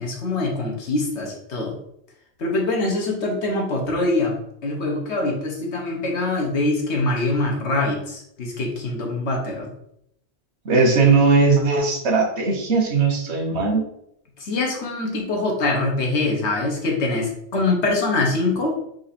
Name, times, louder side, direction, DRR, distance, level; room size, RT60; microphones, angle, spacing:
voice 1, 0.0-1.8 2.4-9.7 14.4-18.8, left 2 dB, 90° left, 0 dB, 1.4 m, -24 dB
voice 2, 10.6-13.9, right 4 dB, 85° right, 1 dB, 1.3 m, -18 dB
4.7 x 2.7 x 4.2 m, 0.75 s
omnidirectional pair, 1.1 m